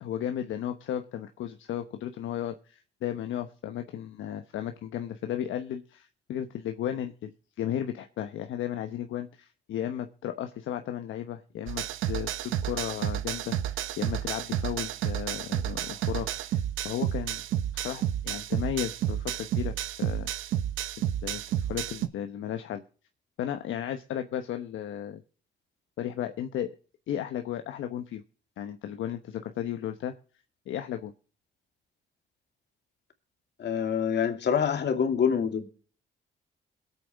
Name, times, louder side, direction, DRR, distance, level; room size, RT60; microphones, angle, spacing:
voice 1, 0.0-17.4 17.7-20.6 21.2-22.8 23.4-25.2 26.0-26.7 27.1-28.2 28.6-30.1 30.7-31.1, left 10 dB, 75° left, 1.0 m, -34 dB
sound 1, 11.7-22.1, right 11 dB, 85° right, 1.0 m, -31 dB
voice 2, 33.6-35.7, left 7 dB, 60° left, 2.5 m, -26 dB
21.5 x 8.5 x 3.5 m
cardioid pair, 90°, 20 cm